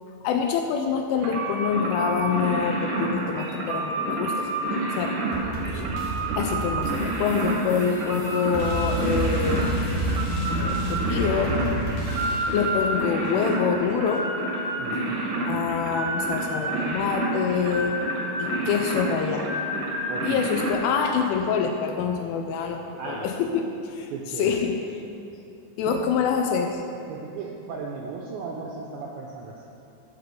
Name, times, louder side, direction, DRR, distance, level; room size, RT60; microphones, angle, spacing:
voice 1, 0.2-4.6 4.9-5.2 6.4-9.7 10.5-11.6 12.5-14.3 15.5-18.0 18.4-19.6 20.2-25.0 25.8-26.8, left 6 dB, 80° left, 4 dB, 2.9 m, -26 dB
sound 1, 1.2-20.7, right 2 dB, 70° right, 2.0 m, -29 dB
sound 2, 5.3-12.7, right 1 dB, 60° left, 2.1 m, -29 dB
voice 2, 5.6-6.0 14.8-15.3 20.1-20.5 23.0-23.3 24.1-24.6 25.9-26.0 27.1-29.6, right 5 dB, 85° right, -1 dB, 2.5 m, -36 dB
13.0 x 5.4 x 6.7 m, 2.7 s
omnidirectional pair, 6.0 m